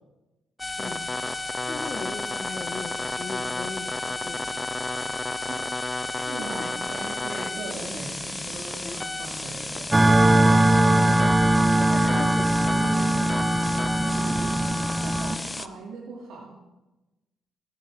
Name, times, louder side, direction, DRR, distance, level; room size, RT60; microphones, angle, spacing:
sound 1, 0.6-15.7, left 2 dB, 20° left, 0.8 m, -32 dB
voice 1, 0.8-1.1 1.7-4.5 6.2-6.7 7.3-7.6 8.8-9.0 11.8-13.5, left 4 dB, 45° left, 8 dB, 1.7 m, -39 dB
voice 2, 5.2-11.3 14.0-16.6, right 3 dB, 70° right, -5 dB, 2.6 m, -40 dB
sound 2, 9.9-15.4, right 1 dB, 20° right, 0.9 m, -20 dB
18.5 x 9.1 x 3.7 m, 1.0 s
hypercardioid pair, 50°, 0 cm